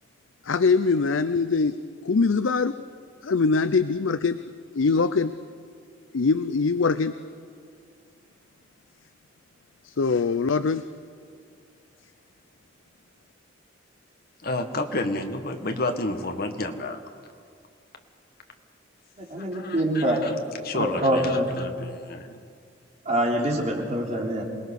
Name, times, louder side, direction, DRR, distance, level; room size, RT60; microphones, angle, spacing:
voice 1, 0.4-1.8 2.0-2.7 3.2-4.4 4.7-5.3 6.1-7.1 9.8-10.8, left 4 dB, 90° left, 12 dB, 0.6 m, -22 dB
voice 2, 14.4-17.0 19.5-20.3 20.6-22.3, left 2 dB, 50° left, 5 dB, 1.8 m, -30 dB
voice 3, 19.3-20.3 20.7-21.5 23.1-24.5, equal, 35° right, -1 dB, 3.8 m, -25 dB
27.5 x 19.5 x 6.5 m, 2.3 s
head